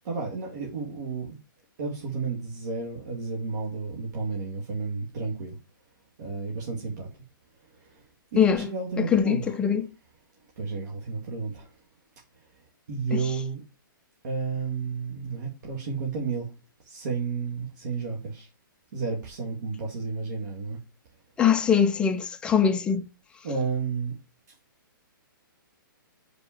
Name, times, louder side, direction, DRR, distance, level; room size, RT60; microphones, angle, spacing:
voice 1, 0.0-1.4 1.8-5.6 6.2-7.1 7.8-8.0 8.3-9.6 10.6-11.7 12.9-13.6 14.2-16.5 16.8-18.5 18.9-20.8 23.4-24.1, right 4 dB, 55° right, 2.2 m, -32 dB
voice 2, 8.4-8.7 9.0-9.9 13.1-13.2 21.4-23.1, left 7 dB, 10° left, 0.4 m, -22 dB
5.2 x 4.7 x 5.9 m
hypercardioid pair, 150°, 12 cm